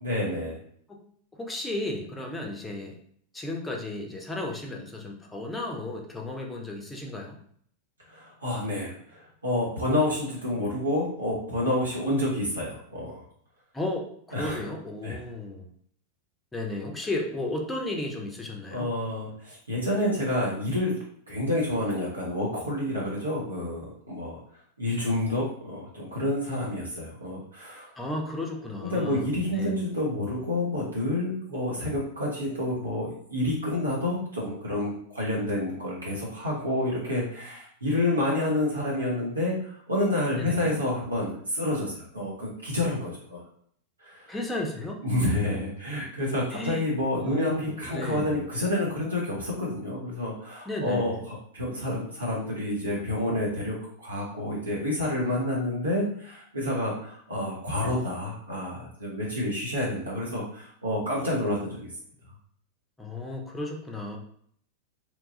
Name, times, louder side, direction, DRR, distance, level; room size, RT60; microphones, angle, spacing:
voice 1, 0.0-0.6 8.1-13.2 14.3-14.6 15.0-15.2 18.7-21.0 21.3-24.4 24.8-27.9 28.8-43.4 44.0-44.2 45.0-61.9, left 1 dB, 80° right, -5 dB, 0.8 m, -29 dB
voice 2, 1.4-3.0 3.3-7.4 13.7-15.7 16.5-18.9 28.0-29.3 29.6-29.7 40.4-40.8 44.3-45.0 46.5-46.9 47.1-48.4 50.7-51.2 63.0-64.2, left 2 dB, 10° left, 0 dB, 0.5 m, -34 dB
2.9 x 2.3 x 2.7 m, 0.63 s
figure-of-eight pair, 90°, 0 cm